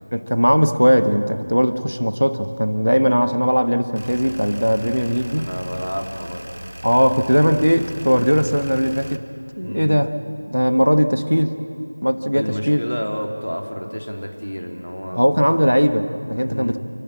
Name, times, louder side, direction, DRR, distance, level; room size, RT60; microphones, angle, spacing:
voice 1, 0.1-5.5 6.8-9.2 9.6-10.1 10.5-11.6 12.0-12.8 15.1-16.8, equal, 90° right, 10 dB, 1.3 m, -18 dB
sound 1, 4.0-9.2, right 1 dB, 50° right, 1.2 m, -37 dB
voice 2, 5.4-6.5 9.6-10.0 12.3-15.2 16.4-16.8, equal, 75° left, 3 dB, 3.1 m, -29 dB
28.5 x 12.0 x 8.6 m, 2.7 s
figure-of-eight pair, 175°, 0 cm